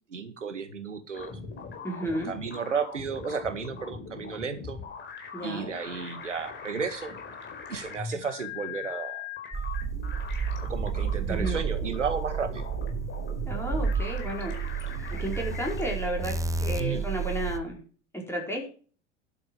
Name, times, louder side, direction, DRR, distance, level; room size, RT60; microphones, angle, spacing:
voice 1, 0.1-1.3 2.2-4.8 5.4-7.1 7.7-9.3 10.6-12.7 16.8-17.1, right 5 dB, 85° right, 11 dB, 1.9 m, -33 dB
sound 1, 1.1-16.0, left 5 dB, 30° left, 4.6 m, -41 dB
voice 2, 1.8-2.3 5.3-5.7 11.3-11.6 13.5-14.5 14.9-17.8 18.1-18.7, equal, 5° left, -1 dB, 5.0 m, -33 dB
sound 2, 9.5-17.6, right 6 dB, 10° right, 1.1 m, -31 dB
11.5 x 8.5 x 6.2 m, 0.40 s
figure-of-eight pair, 80°, 36 cm